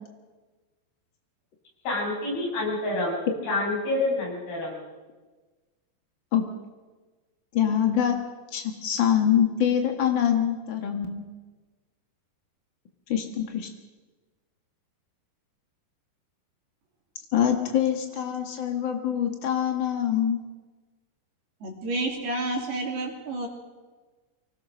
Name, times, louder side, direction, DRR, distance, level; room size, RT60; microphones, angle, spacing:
voice 1, 1.9-3.1 3.4-4.8, left 2 dB, 60° left, -3 dB, 8.7 m, -27 dB
voice 2, 7.5-8.2 8.5-11.3 13.1-13.7 17.3-20.4, left 9 dB, 80° left, 4 dB, 1.0 m, -24 dB
voice 3, 21.6-23.5, right 2 dB, 65° right, 0 dB, 4.7 m, -30 dB
25.0 x 19.5 x 6.3 m, 1.3 s
omnidirectional pair, 5.1 m